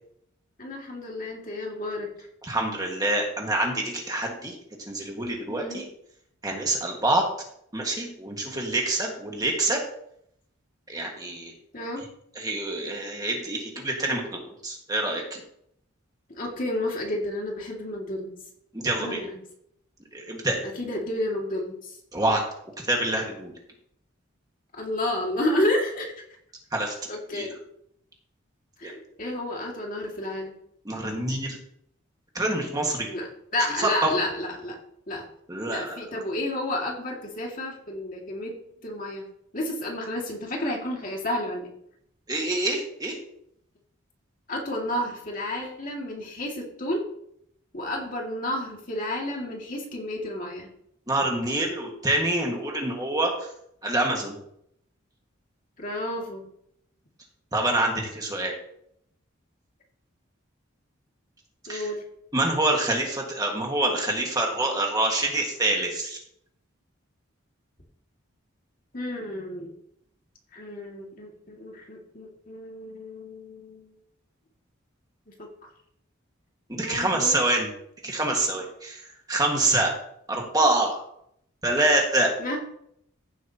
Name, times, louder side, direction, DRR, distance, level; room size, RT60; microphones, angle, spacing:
voice 1, 0.6-2.3 5.5-5.9 11.7-12.0 16.3-18.4 19.0-19.4 20.6-21.9 24.7-26.1 27.1-27.6 28.8-30.6 33.1-33.3 33.5-34.8 35.1-35.3 35.7-38.5 38.8-39.2 39.5-41.7 44.5-47.0 47.7-50.7 55.8-56.4 61.7-62.0 68.9-69.7 70.5-73.9 75.3-75.5 76.8-77.4 82.4-82.6, left 1 dB, 40° left, -1 dB, 2.2 m, -31 dB
voice 2, 2.4-4.5 4.9-5.8 6.4-7.2 7.7-9.8 10.9-11.5 12.3-15.4 18.7-19.2 20.1-20.6 22.1-22.4 22.8-23.5 26.7-26.9 27.3-27.5 28.8-28.9 30.8-31.6 32.3-33.1 33.8-34.1 35.5-36.2 42.3-43.1 51.1-53.5 53.8-54.3 57.5-58.5 61.7-61.9 62.3-66.2 76.7-77.7 78.0-79.0 79.3-79.9 80.3-81.0 81.6-82.3, right 2 dB, 20° right, 0 dB, 1.7 m, -26 dB
15.5 x 7.8 x 2.9 m, 0.71 s
head